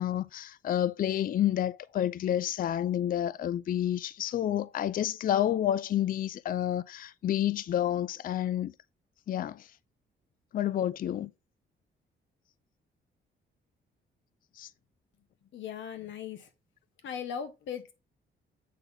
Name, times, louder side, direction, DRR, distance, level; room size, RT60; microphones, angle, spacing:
voice 1, 0.0-8.7 9.3-9.7 10.5-11.3 14.6-14.7, left 11 dB, 45° left, 0.4 m, -29 dB
voice 2, 15.5-16.5 17.0-17.9, left 8 dB, 70° left, 1.6 m, -38 dB
8.5 x 4.0 x 5.0 m
cardioid pair, 90°, 20 cm